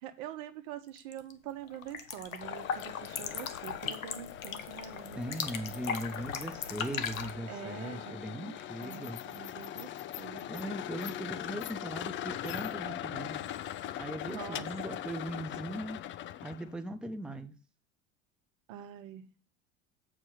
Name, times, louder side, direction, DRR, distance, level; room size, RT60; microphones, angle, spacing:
voice 1, 0.0-5.4 5.6-6.0 7.5-9.9 10.2-10.5 14.3-15.0 18.7-19.3, right 10 dB, 60° right, 1.1 m, -45 dB
sound 1, 1.0-1.3 1.6-7.3, left 7 dB, 80° left, 0.9 m, -38 dB
sound 2, 2.4-16.7, left 12 dB, 30° left, 0.5 m, -41 dB
voice 2, 5.2-9.2 10.5-13.4 14.0-16.0 16.4-17.5, right 1 dB, ahead, 0.9 m, -39 dB
7.5 x 4.9 x 6.3 m
hypercardioid pair, 70°, 40 cm